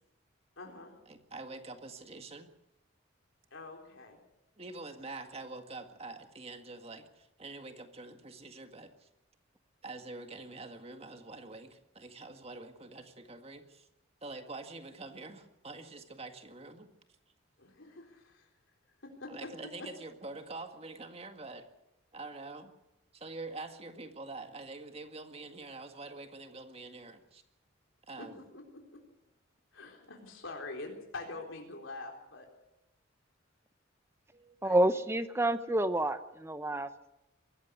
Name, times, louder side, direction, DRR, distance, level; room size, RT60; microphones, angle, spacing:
voice 1, 0.6-1.0 3.5-4.2 17.6-18.5 19.0-19.5 28.5-29.0 29.7-32.5 34.6-34.8, left 2 dB, 75° left, 1 dB, 3.9 m, -45 dB
voice 2, 1.1-2.5 4.6-9.1 9.8-13.9 14.2-16.9 19.3-21.7 22.1-22.7 23.1-27.4 28.1-28.4 34.3-34.6, right 3 dB, 30° right, 6 dB, 1.9 m, -46 dB
voice 3, 34.6-37.1, right 1 dB, 10° right, 11 dB, 0.8 m, -29 dB
23.0 x 15.0 x 8.2 m, 0.91 s
head